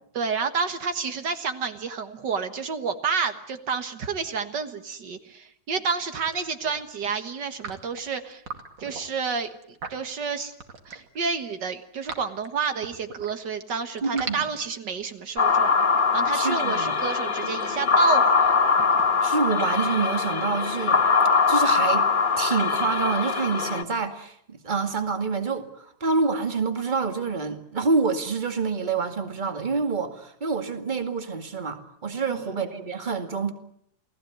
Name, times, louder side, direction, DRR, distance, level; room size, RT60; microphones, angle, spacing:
voice 1, 0.2-8.4 8.8-9.5 9.9-10.5 10.9-15.7 16.1-18.5 32.3-32.5, right 5 dB, 70° right, 8 dB, 2.1 m, -29 dB
sound 1, 5.7-6.8 7.5-11.2 11.6-13.6 14.0-20.1, right 4 dB, 90° right, 3.1 m, -42 dB
voice 2, 14.0-14.5 16.3-16.9 19.2-21.0 21.5-22.1 22.4-33.5, right 4 dB, 25° right, 6 dB, 2.2 m, -27 dB
sound 2, 15.4-23.8, left 5 dB, 30° left, 1.3 m, -22 dB
29.5 x 18.5 x 9.4 m, 0.72 s
omnidirectional pair, 1.9 m